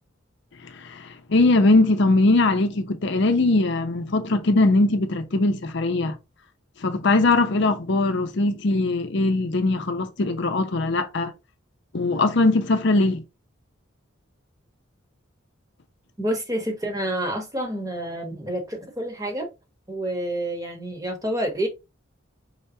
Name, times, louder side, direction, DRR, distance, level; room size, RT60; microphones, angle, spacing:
voice 1, 0.6-6.2 6.8-11.3 11.9-13.2, left 2 dB, 60° left, 0.6 m, -21 dB
voice 2, 16.2-19.5 19.9-21.7, right 1 dB, 15° right, 1.1 m, -28 dB
5.5 x 3.4 x 2.8 m
head